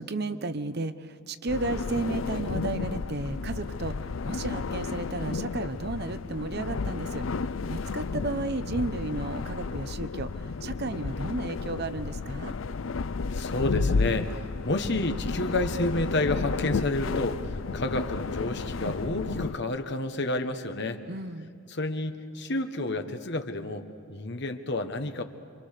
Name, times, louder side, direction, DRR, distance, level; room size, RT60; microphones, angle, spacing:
voice 1, 0.0-7.2 7.7-12.6 21.1-21.5, right 2 dB, 55° right, 11 dB, 0.9 m, -33 dB
sound 1, 1.5-19.6, left 4 dB, 75° left, 0.6 m, -32 dB
voice 2, 13.3-21.0 21.7-25.2, left 2 dB, 55° left, 7 dB, 1.5 m, -30 dB
28.0 x 25.0 x 6.7 m, 2.6 s
head